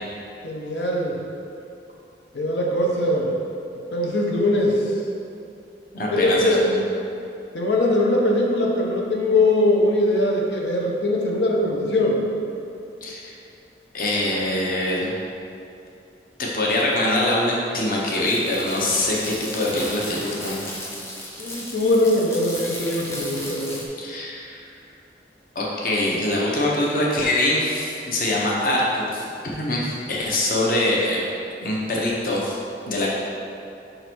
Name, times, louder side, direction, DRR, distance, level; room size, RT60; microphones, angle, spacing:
voice 1, 0.4-1.2 2.3-3.3 3.9-4.9 6.1-6.7 7.5-12.2 21.4-23.8, left 1 dB, 80° left, -1 dB, 0.8 m, -21 dB
voice 2, 5.9-6.8 13.0-13.2 13.9-15.1 16.4-20.7 24.0-24.6 25.5-29.3 29.5-31.2 31.6-32.6 32.9-33.1, left 1 dB, 50° left, -4 dB, 0.9 m, -23 dB
sound 1, 18.1-23.9, left 1 dB, 15° left, 0.7 m, -35 dB
5.3 x 3.9 x 4.5 m, 2.6 s
head